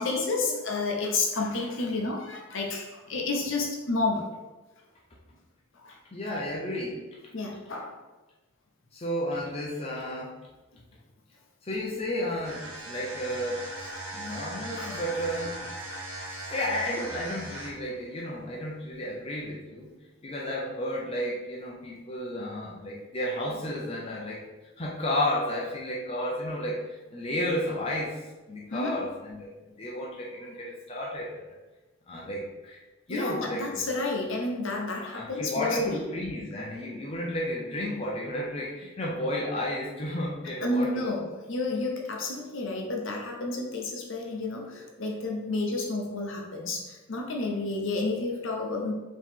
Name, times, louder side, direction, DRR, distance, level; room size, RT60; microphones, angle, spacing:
voice 1, 0.0-4.3 5.8-6.0 7.3-7.9 14.7-15.1 15.4-15.5 28.7-29.0 33.1-36.0 40.6-48.9, left 3 dB, 60° left, 0 dB, 0.8 m, -30 dB
voice 2, 6.1-7.1 8.9-10.3 11.6-13.7 14.1-15.6 16.5-19.9 20.2-24.4 24.8-28.2 28.5-31.3 32.1-32.8 33.1-33.8 35.1-41.1, left 1 dB, 25° left, -3 dB, 0.6 m, -32 dB
sound 1, 12.4-17.9, right 1 dB, 90° right, 1.5 m, -39 dB
4.6 x 3.1 x 3.6 m, 1.1 s
head